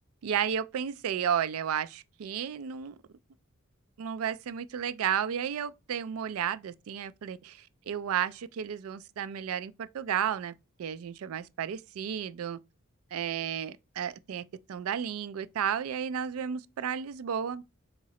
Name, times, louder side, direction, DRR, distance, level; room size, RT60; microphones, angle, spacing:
voice 1, 0.2-3.0 4.0-10.5 10.8-12.6 13.1-14.4 14.7-17.6, right 8 dB, 85° right, 0.4 m, -32 dB
3.7 x 2.9 x 4.1 m
head